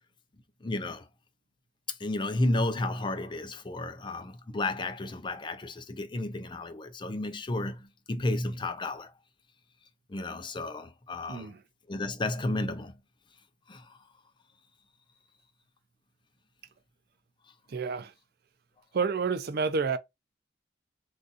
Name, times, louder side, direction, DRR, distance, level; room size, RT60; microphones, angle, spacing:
voice 1, 0.6-1.1 2.0-9.1 10.1-11.5 11.9-12.9 13.7-14.0, left 2 dB, 25° left, 0.5 m, -32 dB
voice 2, 17.7-18.1 18.9-20.0, right 5 dB, 55° right, 0.5 m, -29 dB
3.9 x 2.5 x 2.5 m
head